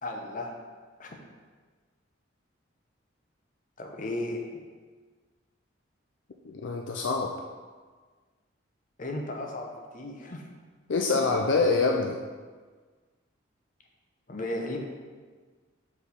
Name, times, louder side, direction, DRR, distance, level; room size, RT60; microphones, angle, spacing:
voice 1, 0.0-0.5 1.0-1.2 3.8-4.5 9.0-10.5 14.3-14.8, left 1 dB, 40° left, 1 dB, 0.8 m, -35 dB
voice 2, 6.4-7.3 10.9-12.2, left 3 dB, 70° left, 2 dB, 0.4 m, -25 dB
4.9 x 4.4 x 5.2 m, 1.5 s
head